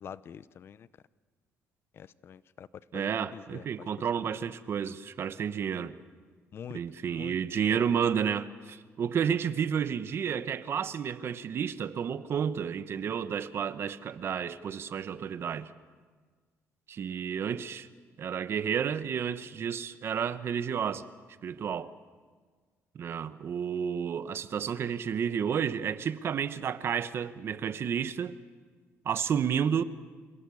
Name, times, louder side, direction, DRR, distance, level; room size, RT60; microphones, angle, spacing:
voice 1, 0.0-0.9 2.0-2.7 2.9-3.7 6.5-6.8 7.1-7.9, left 8 dB, 50° left, 0.6 m, -45 dB
voice 2, 2.9-6.0 6.7-15.7 16.9-17.9 18.2-21.0 21.4-21.9 22.9-28.4 29.0-29.8, right 7 dB, 50° right, 1.1 m, -31 dB
28.0 x 16.5 x 8.5 m
cardioid pair, 120°, 5 cm